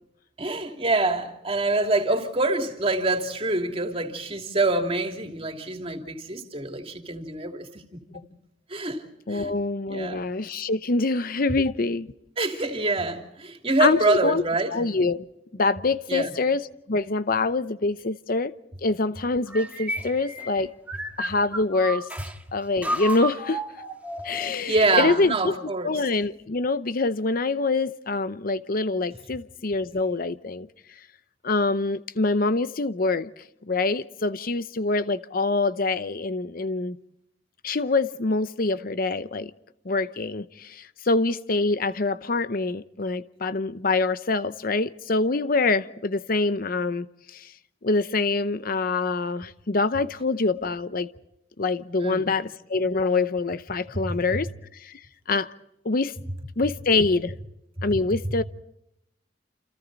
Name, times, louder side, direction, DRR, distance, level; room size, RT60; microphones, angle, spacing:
voice 1, 0.4-7.8 8.7-9.5 9.9-10.2 12.4-14.7 16.1-16.3 24.4-25.9 52.0-52.3, right 2 dB, 30° right, 2.9 m, -26 dB
voice 2, 9.3-12.1 13.8-14.4 14.7-15.2 15.5-18.5 18.8-20.7 21.2-22.1 22.5-23.6 24.2-25.5 25.8-30.7 31.4-33.3 33.7-37.0 37.6-39.5 39.8-47.5 47.8-51.1 51.6-55.0 55.3-55.5 55.8-56.1 56.6-57.3 57.8-58.4, left 3 dB, 50° left, 0.8 m, -25 dB
sound 1, 19.5-22.3 22.8-24.6, right 1 dB, 10° right, 1.8 m, -32 dB
29.0 x 28.5 x 4.1 m
head